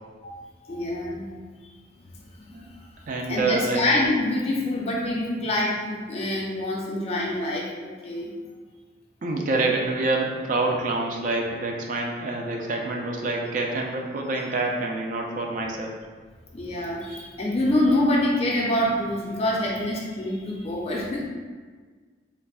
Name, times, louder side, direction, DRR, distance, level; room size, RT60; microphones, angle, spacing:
voice 1, 0.7-1.3 2.2-2.4 2.7-2.9 3.3-8.3 16.5-21.3, left 1 dB, 35° left, -3 dB, 0.4 m, -26 dB
voice 2, 3.1-3.8 9.2-16.0, right 2 dB, 45° right, 0 dB, 0.3 m, -27 dB
3.3 x 2.0 x 2.3 m, 1.5 s
head